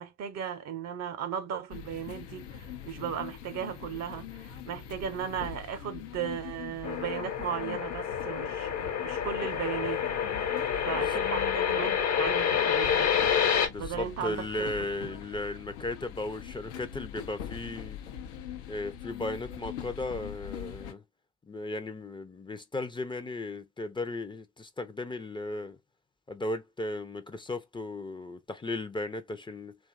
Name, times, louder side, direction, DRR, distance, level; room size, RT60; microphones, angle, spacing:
voice 1, 0.0-10.0 10.8-13.1 13.8-14.7 15.0-15.1, right 8 dB, 50° right, 0.6 m, -36 dB
sound 1, 1.7-20.9, left 9 dB, 80° left, 0.6 m, -43 dB
sound 2, 6.8-13.7, left 8 dB, 50° left, 0.9 m, -28 dB
voice 2, 13.7-18.0 18.7-21.0 21.4-25.8 26.3-29.8, left 2 dB, 15° left, 0.5 m, -36 dB
2.7 x 2.4 x 2.3 m
hypercardioid pair, 60°, 35 cm